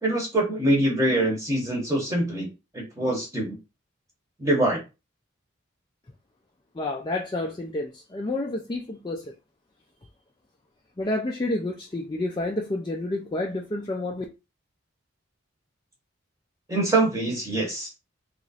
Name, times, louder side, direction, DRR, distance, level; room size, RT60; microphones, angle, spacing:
voice 1, 0.0-2.5 2.7-3.6 4.4-4.8 16.7-17.9, right 1 dB, 15° right, 0.9 m, -24 dB
voice 2, 6.7-9.3 11.0-14.2, left 2 dB, 20° left, 0.4 m, -29 dB
3.0 x 2.5 x 4.0 m
head